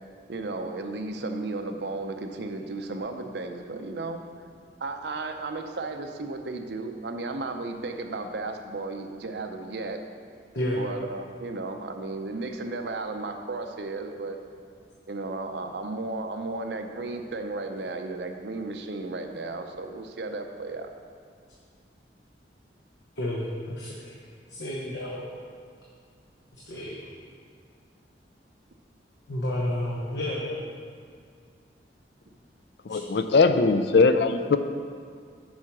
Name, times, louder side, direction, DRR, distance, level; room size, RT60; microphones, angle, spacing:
voice 1, 0.3-4.2 4.8-10.0 10.8-14.4 15.1-20.9, right 3 dB, 75° right, 5 dB, 0.6 m, -34 dB
voice 2, 23.2-24.1 24.5-25.2 26.7-27.0 29.3-30.7, left 1 dB, 85° left, -4 dB, 1.0 m, -30 dB
voice 3, 32.8-34.6, left 4 dB, 70° left, 9 dB, 0.4 m, -20 dB
7.3 x 4.9 x 5.9 m, 2.2 s
head